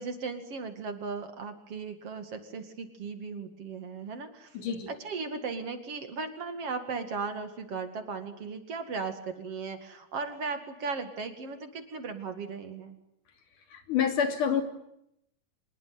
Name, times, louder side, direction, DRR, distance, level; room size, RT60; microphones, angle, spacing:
voice 1, 0.0-4.6 4.9-13.0, right 4 dB, 50° right, 8 dB, 3.0 m, -37 dB
voice 2, 4.5-4.9 13.7-14.6, left 7 dB, 75° left, 6 dB, 4.4 m, -27 dB
25.5 x 21.0 x 9.5 m, 0.81 s
omnidirectional pair, 3.7 m